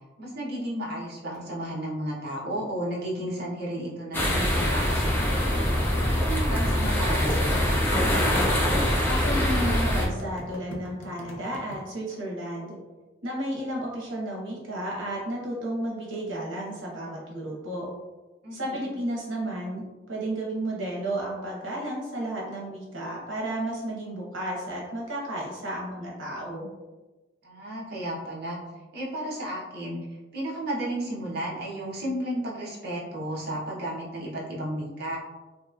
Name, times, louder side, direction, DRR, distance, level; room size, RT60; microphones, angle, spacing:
voice 1, 0.2-5.5 6.0-7.8 18.4-18.8 27.4-28.6 28.9-35.2, right 1 dB, 55° right, -6 dB, 0.8 m, -33 dB
sound 1, 4.1-10.1, equal, 10° left, 0.5 m, -24 dB
sound 2, 4.2-11.8, left 1 dB, 80° left, 0.5 m, -42 dB
voice 2, 9.1-12.8 13.2-17.9 18.5-26.7, right 1 dB, 85° right, -3 dB, 1.0 m, -32 dB
2.9 x 2.9 x 2.4 m, 1.2 s
head